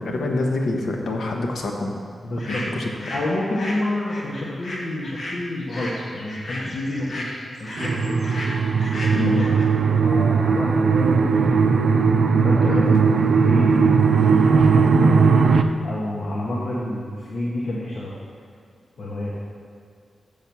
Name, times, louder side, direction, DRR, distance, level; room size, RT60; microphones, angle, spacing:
voice 1, 0.0-1.9 2.5-3.1 9.1-9.4 12.7-12.9, left 2 dB, 85° left, 1 dB, 1.1 m, -26 dB
voice 2, 2.2-2.6 3.1-8.2 9.0-9.5 9.9-11.8 12.4-15.3 15.8-18.2 19.0-19.3, left 1 dB, 65° left, -5 dB, 1.2 m, -29 dB
sound 1, 2.4-3.3 3.5-9.6, left 1 dB, 45° left, 1.5 m, -34 dB
sound 2, 7.8-15.6, right 5 dB, 70° right, 0.4 m, -18 dB
7.0 x 6.1 x 6.9 m, 2.1 s
wide cardioid pair, 145°, 0 cm